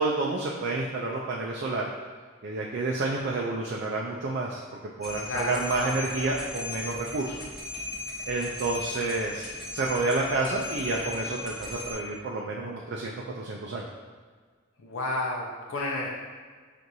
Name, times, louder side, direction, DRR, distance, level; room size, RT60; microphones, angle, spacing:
voice 1, 0.0-1.9 2.4-4.6 5.0-7.4 8.3-13.9, right 3 dB, 55° right, -2 dB, 0.4 m, -29 dB
sound 1, 5.0-11.9, left 2 dB, ahead, 0.7 m, -37 dB
voice 2, 5.2-5.9 14.8-16.1, left 2 dB, 80° left, -2 dB, 0.5 m, -31 dB
6.0 x 2.5 x 2.7 m, 1.5 s
head